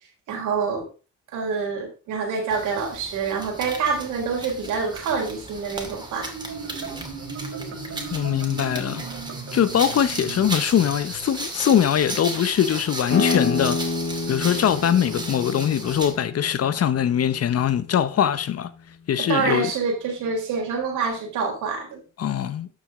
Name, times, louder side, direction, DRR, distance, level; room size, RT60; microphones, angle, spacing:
voice 1, 0.3-0.9 1.3-6.3 19.2-22.0, right 5 dB, 90° right, 4.0 m, -26 dB
sound 1, 2.5-16.2, right 2 dB, 15° right, 2.3 m, -35 dB
Marimba xylophone, 6.1-11.7, right 5 dB, 60° right, 2.9 m, -37 dB
voice 2, 8.1-9.0 9.5-13.8 14.3-18.7 19.1-19.7 22.2-22.7, left 9 dB, 55° left, 0.9 m, -22 dB
E open string, 13.1-18.5, left 3 dB, 70° left, 4.1 m, -29 dB
12.5 x 6.2 x 3.6 m
cardioid pair, 90°, 30 cm